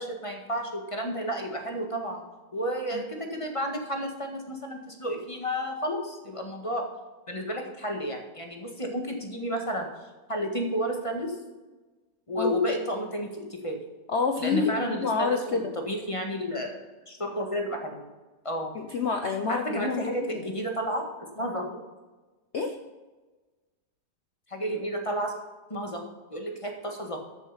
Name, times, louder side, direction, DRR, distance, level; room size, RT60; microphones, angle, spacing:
voice 1, 0.0-2.2 2.5-6.9 7.3-9.9 10.3-11.3 12.3-13.8 14.4-18.0 18.4-18.7 19.5-21.1 21.3-21.8 24.5-25.3 25.7-26.0 26.3-27.2, equal, 20° left, 2 dB, 1.7 m, -31 dB
voice 2, 14.1-15.7 18.7-20.4 22.5-22.8, left 5 dB, 50° left, 4 dB, 0.9 m, -28 dB
13.5 x 7.1 x 5.7 m, 1.2 s
omnidirectional pair, 1.8 m